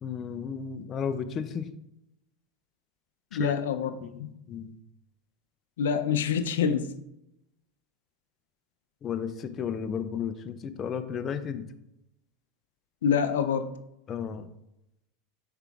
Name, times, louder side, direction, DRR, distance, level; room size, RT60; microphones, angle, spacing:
voice 1, 0.0-1.7 3.3-3.6 4.0-4.7 9.0-11.7 14.1-14.5, left 7 dB, 35° left, 9 dB, 0.5 m, -33 dB
voice 2, 3.3-4.3 5.8-6.9 13.0-13.7, left 7 dB, 90° left, 10 dB, 0.5 m, -26 dB
5.9 x 4.5 x 3.5 m, 0.85 s
supercardioid pair, 115°, 0 cm